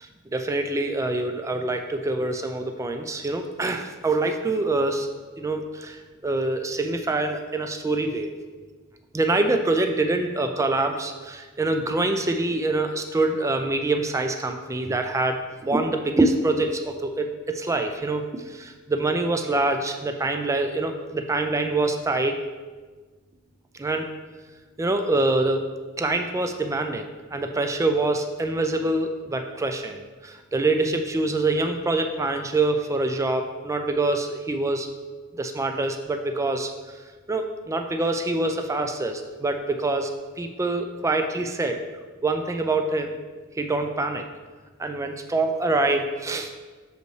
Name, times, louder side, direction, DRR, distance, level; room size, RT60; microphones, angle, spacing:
voice 1, 0.3-5.1 5.4-8.3 9.1-22.4 23.7-24.1 24.8-25.7 26.0-34.9 35.3-37.0 37.3-40.1 40.4-41.8 42.2-43.2 43.5-44.2 44.8-46.5, right 2 dB, 15° right, 5 dB, 0.3 m, -25 dB
6.4 x 5.2 x 3.2 m, 1.4 s
head